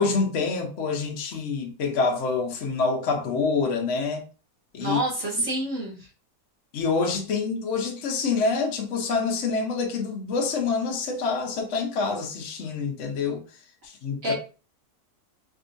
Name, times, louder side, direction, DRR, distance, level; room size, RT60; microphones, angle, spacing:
voice 1, 0.0-4.2 4.7-5.0 6.7-13.4 13.8-14.3, left 4 dB, 55° left, 1.0 m, -26 dB
voice 2, 4.8-6.1 14.2-14.3, right 1 dB, 60° right, 1.5 m, -27 dB
3.7 x 2.6 x 2.5 m
omnidirectional pair, 1.6 m